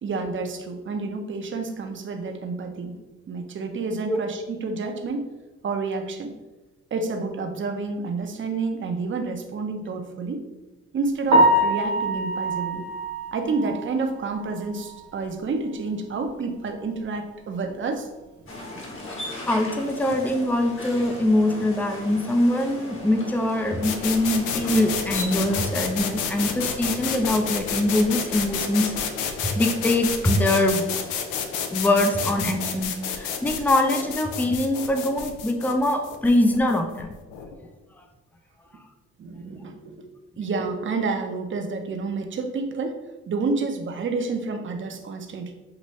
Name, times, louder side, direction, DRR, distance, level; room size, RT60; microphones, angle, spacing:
voice 1, 0.0-3.0 3.3-5.3 5.6-6.3 6.9-10.4 10.9-12.8 13.3-18.1 20.0-20.1 26.3-26.4 39.2-40.1 40.4-43.0 43.3-45.5, right 4 dB, 40° right, 4 dB, 0.7 m, -29 dB
Piano, 11.3-15.3 15.6-15.7 16.2-16.3 16.7-16.8 19.9-20.0 28.5-28.7, right 1 dB, 75° right, 1.0 m, -24 dB
sound 1, 18.5-25.8, left 1 dB, 45° left, 1.3 m, -38 dB
voice 2, 19.5-28.9 29.6-30.9 31.7-37.1, left 1 dB, 5° left, 4 dB, 0.5 m, -23 dB
sound 2, 23.8-37.5, left 7 dB, 90° left, 0.5 m, -30 dB
5.8 x 2.6 x 3.1 m, 1.1 s
cardioid pair, 90°, 30 cm